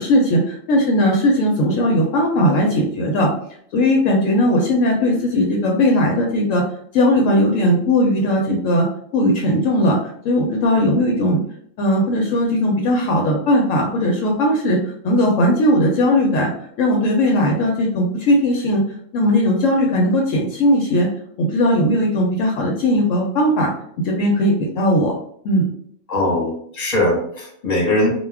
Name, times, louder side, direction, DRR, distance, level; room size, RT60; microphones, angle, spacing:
voice 1, 0.0-3.3 3.7-6.6 6.9-8.9 9.1-11.4 11.8-14.8 15.0-16.5 16.8-18.8 19.1-21.1 21.4-23.7 24.0-25.1 25.4-25.7, left 1 dB, 70° left, 0 dB, 0.9 m, -18 dB
voice 2, 26.1-28.1, left 1 dB, 35° left, -3 dB, 1.0 m, -20 dB
2.4 x 2.2 x 3.3 m, 0.65 s
omnidirectional pair, 1.4 m